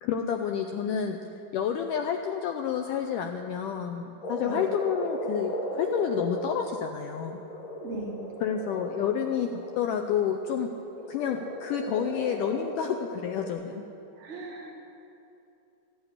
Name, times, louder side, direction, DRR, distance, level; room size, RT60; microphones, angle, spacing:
voice 1, 0.0-1.2 1.5-7.4 8.4-10.7 11.1-13.8, left 8 dB, 85° left, 5 dB, 1.9 m, -29 dB
Frog, 4.2-10.1 11.0-13.5, equal, 50° left, 2.8 m, -36 dB
voice 2, 7.8-8.2 14.2-14.7, right 2 dB, 55° right, -2 dB, 2.6 m, -38 dB
15.0 x 8.0 x 9.8 m, 2.8 s
omnidirectional pair, 4.3 m